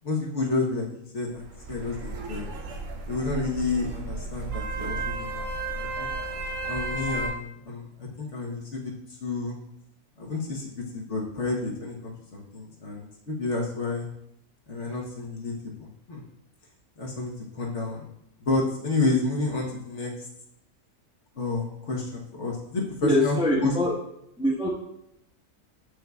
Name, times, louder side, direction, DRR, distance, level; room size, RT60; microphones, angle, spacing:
voice 1, 0.0-2.5 3.1-5.4 5.7-6.1 6.7-8.9 9.2-9.6 10.2-10.7 10.9-14.1 14.7-15.5 15.8-16.2 17.0-18.1 18.4-20.3 21.3-23.4 23.6-23.7, left 3 dB, 55° left, -2 dB, 1.4 m, -30 dB
sound 1, 1.3-7.3, right 3 dB, 65° right, 1.1 m, -33 dB
voice 2, 23.0-23.9 24.4-24.7, left 1 dB, 5° right, -4 dB, 1.1 m, -23 dB
7.9 x 6.4 x 2.3 m, 0.78 s
omnidirectional pair, 1.5 m